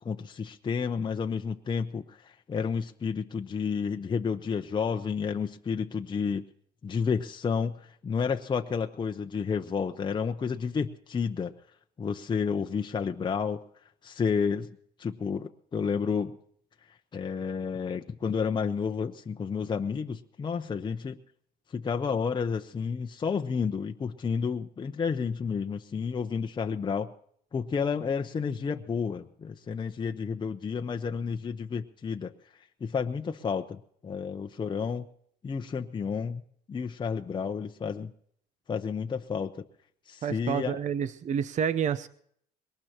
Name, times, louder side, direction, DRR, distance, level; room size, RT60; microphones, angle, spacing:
voice 1, 0.0-6.4 6.8-11.5 12.0-13.6 14.0-14.7 15.0-16.3 17.1-21.2 21.7-27.1 27.5-32.3 32.8-33.8 34.0-35.0 35.4-36.4 36.7-38.1 38.7-39.6 40.1-40.8, left 6 dB, 25° left, 5 dB, 0.8 m, -31 dB
voice 2, 40.2-42.1, right 8 dB, 45° right, 14 dB, 0.7 m, -29 dB
22.0 x 19.0 x 2.9 m, 0.64 s
cardioid pair, 110°, 17 cm